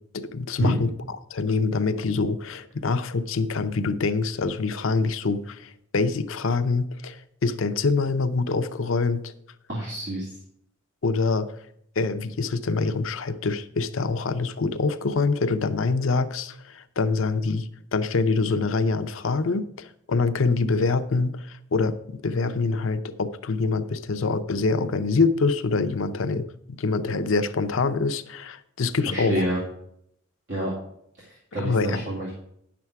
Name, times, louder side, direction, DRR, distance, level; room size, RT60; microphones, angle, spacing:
voice 1, 0.1-0.9 1.3-9.3 11.0-11.5 12.0-29.4 31.6-32.0, left 4 dB, 80° left, 10 dB, 0.6 m, -25 dB
voice 2, 9.7-10.3 29.1-29.6 30.5-30.7 31.2-32.3, equal, 65° right, -5 dB, 2.4 m, -28 dB
10.0 x 6.9 x 4.7 m, 0.74 s
head